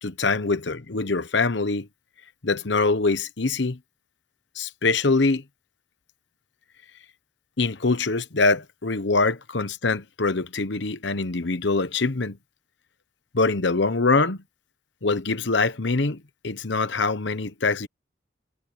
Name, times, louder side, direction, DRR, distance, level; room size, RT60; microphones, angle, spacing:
voice 1, 0.0-1.9 2.4-3.8 4.6-5.4 7.6-12.4 13.3-14.4 15.0-17.9, left 3 dB, 65° left, 1.0 m, -24 dB
head